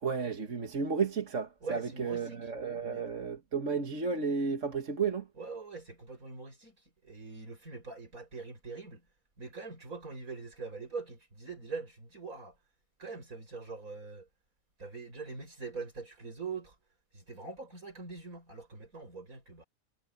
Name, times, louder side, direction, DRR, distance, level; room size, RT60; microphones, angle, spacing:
voice 1, 0.0-5.3, right 5 dB, 60° right, 1.9 m, -33 dB
voice 2, 1.6-2.5 2.8-3.1 5.4-6.8 7.0-9.1 9.4-12.6 13.0-14.3 14.8-16.8 17.1-19.6, right 4 dB, 75° right, 6.9 m, -43 dB
omnidirectional pair, 1.5 m